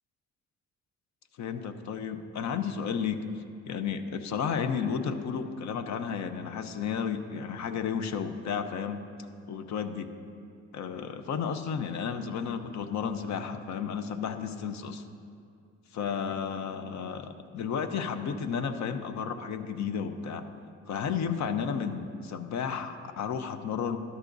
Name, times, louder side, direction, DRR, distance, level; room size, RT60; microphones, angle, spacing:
voice 1, 1.4-3.2 3.6-9.0 9.5-10.1 10.7-15.0 15.9-20.4 20.9-24.0, left 6 dB, 65° left, 8 dB, 0.8 m, -32 dB
13.0 x 11.0 x 2.6 m, 2.4 s
cardioid pair, 90°, 30 cm